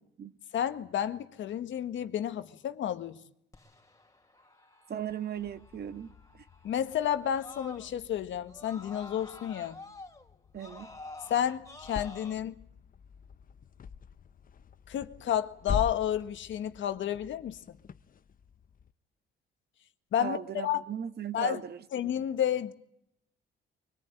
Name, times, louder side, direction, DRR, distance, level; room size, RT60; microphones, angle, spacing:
voice 1, 0.5-3.2 6.6-9.8 11.3-12.6 14.9-17.8 20.1-20.8 21.3-21.6 21.9-22.7, left 10 dB, 70° left, 1.7 m, -31 dB
Screaming, 3.5-8.1 8.5-12.3, left 2 dB, 15° left, 3.6 m, -50 dB
voice 2, 4.9-6.1 10.5-10.9 20.2-21.8, right 8 dB, 55° right, 1.6 m, -37 dB
sound 1, 5.4-18.9, left 6 dB, 45° left, 0.9 m, -44 dB
24.0 x 18.5 x 9.2 m
cardioid pair, 90°, 20 cm